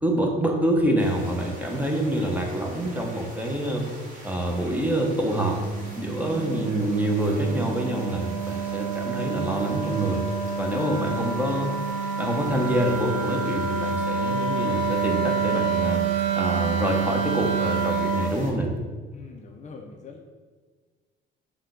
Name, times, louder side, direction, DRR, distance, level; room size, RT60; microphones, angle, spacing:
voice 1, 0.0-3.8 4.2-5.6 6.0-10.2 10.6-11.7 12.2-16.0 16.3-18.7, right 1 dB, 10° right, 1 dB, 0.7 m, -26 dB
sound 1, 1.0-18.5, right 1 dB, 40° right, 1.3 m, -44 dB
Wind instrument woodwind instrument, 5.4-18.4, right 5 dB, 80° right, 0.6 m, -28 dB
voice 2, 10.8-11.4 19.1-20.2, left 4 dB, 35° left, 2 dB, 0.5 m, -44 dB
5.6 x 2.2 x 3.7 m, 1.5 s
cardioid pair, 95°, 20 cm